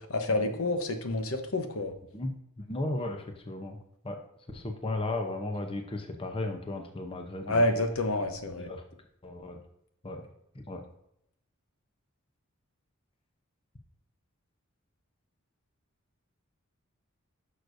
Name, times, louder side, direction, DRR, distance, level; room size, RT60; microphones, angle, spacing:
voice 1, 0.1-1.9 7.5-8.7, left 1 dB, 75° left, 6 dB, 1.0 m, -28 dB
voice 2, 2.1-3.8 4.0-4.2 4.5-7.7 8.6-8.8 9.2-9.6 10.0-10.3 10.7-10.8, left 2 dB, 25° left, 4 dB, 0.8 m, -35 dB
11.0 x 6.3 x 2.7 m, 0.77 s
head